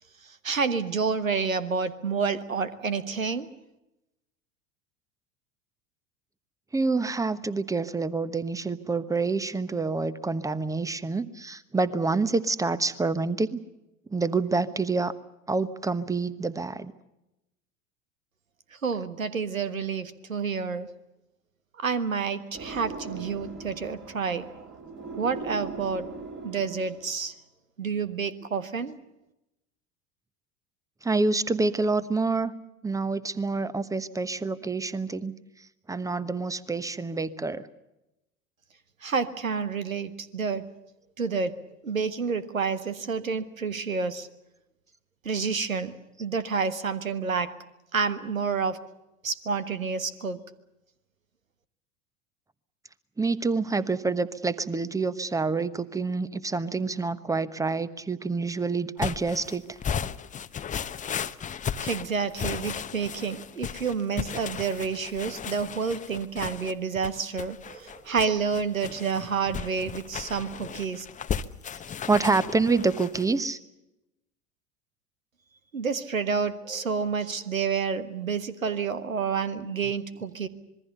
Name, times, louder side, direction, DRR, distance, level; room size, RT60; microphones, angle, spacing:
voice 1, 0.4-3.5 18.8-20.9 21.8-24.5 25.2-26.1 26.4-27.3 27.8-29.0 39.0-40.7 41.2-41.6 41.8-44.3 45.2-45.9 46.2-47.5 47.9-48.8 49.2-50.4 61.8-71.0 75.7-80.5, right 5 dB, 80° right, 14 dB, 1.5 m, -29 dB
voice 2, 6.7-13.6 14.1-15.1 15.5-16.9 31.0-32.5 32.8-35.3 35.9-37.7 53.2-59.6 72.1-73.6, right 3 dB, 10° right, 16 dB, 1.1 m, -27 dB
sound 1, 22.5-27.2, right 4 dB, 30° right, 3.4 m, -40 dB
sound 2, 59.0-73.3, left 8 dB, 20° left, 0.9 m, -35 dB
26.5 x 21.5 x 6.8 m, 0.93 s
figure-of-eight pair, 75°, 40 cm